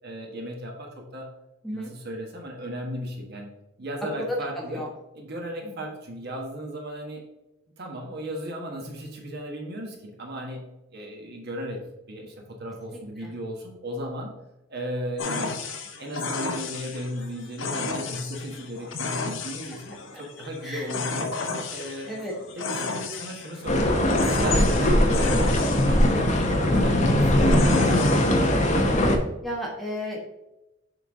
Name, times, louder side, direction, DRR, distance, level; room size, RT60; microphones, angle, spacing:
voice 1, 0.0-1.3 1.7-3.5 3.8-4.8 5.1-7.2 7.8-10.6 10.9-14.3 14.7-15.5 16.0-21.3 21.7-22.1 22.6-25.3 25.8-28.3, equal, 50° right, 0 dB, 1.4 m, -35 dB
voice 2, 4.5-4.9 5.6-5.7 13.2-13.3 20.4-20.9 22.1-22.3 29.4-30.3, equal, ahead, -3 dB, 1.1 m, -34 dB
sound 1, 15.2-28.8, left 4 dB, 65° left, 0.8 m, -33 dB
sound 2, 23.7-29.2, left 1 dB, 35° left, 0.8 m, -20 dB
6.8 x 4.5 x 3.6 m, 0.96 s
head